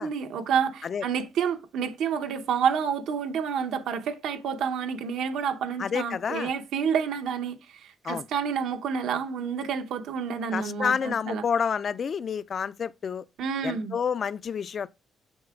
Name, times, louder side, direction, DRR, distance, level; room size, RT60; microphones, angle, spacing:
voice 1, 0.0-11.4 13.4-14.0, right 7 dB, 80° right, 0.8 m, -29 dB
voice 2, 5.8-6.5 8.0-8.3 10.5-13.2 13.6-14.9, left 6 dB, 50° left, 0.3 m, -29 dB
7.9 x 5.7 x 2.4 m
cardioid pair, 90°, 0 cm